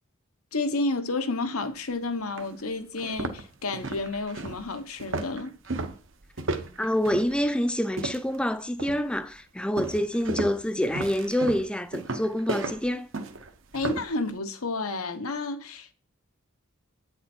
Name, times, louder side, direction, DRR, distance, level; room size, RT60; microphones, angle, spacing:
voice 1, 0.5-5.5 13.7-15.9, left 3 dB, 85° left, 1.1 m, -31 dB
sound 1, 1.8-1.9 2.4-2.5 2.9-8.4 8.8-9.2 9.8-14.1, right 2 dB, 65° right, 1.0 m, -34 dB
voice 2, 6.8-13.1, equal, 5° left, 0.4 m, -27 dB
8.8 x 6.5 x 4.5 m
head